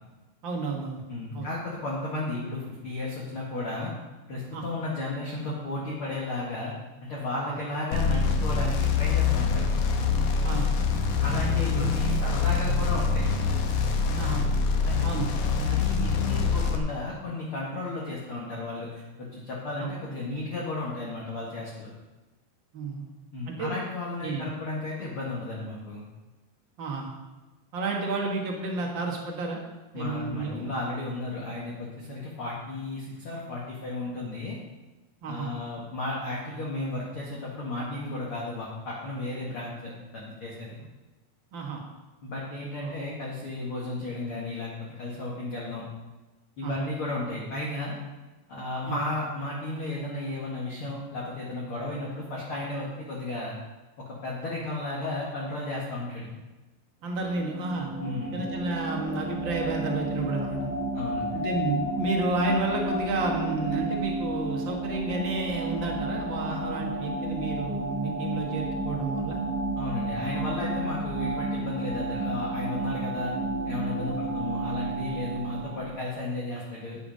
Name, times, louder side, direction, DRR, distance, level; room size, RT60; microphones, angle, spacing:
voice 1, 0.4-1.0 1.3-1.5 4.5-4.6 7.5-7.6 10.4-10.7 11.6-11.9 14.2-14.5 15.0-15.3 19.8-19.9 22.7-23.1 23.5-23.7 24.2-24.5 26.8-27.1 27.7-29.6 29.9-30.7 35.2-35.5 41.5-41.8 42.8-43.0 46.6-46.7 48.8-49.0 57.0-57.9 58.3-60.7 61.3-69.4 74.0-74.1, right 3 dB, 70° right, 0 dB, 1.1 m, -31 dB
voice 2, 1.1-3.9 4.3-6.7 7.0-9.7 11.2-13.2 14.8-21.9 23.3-26.0 29.9-34.6 35.3-40.8 42.2-44.7 45.0-45.8 46.6-47.9 48.5-53.6 54.2-56.3 58.0-58.4 60.9-61.3 69.8-73.3 73.7-77.0, left 2 dB, 45° left, -5 dB, 1.9 m, -34 dB
sound 1, 7.9-16.8, left 5 dB, 70° left, 1.9 m, -25 dB
sound 2, 57.2-76.1, right 1 dB, 50° right, 2.5 m, -31 dB
10.0 x 8.4 x 5.3 m, 1.1 s
omnidirectional pair, 4.5 m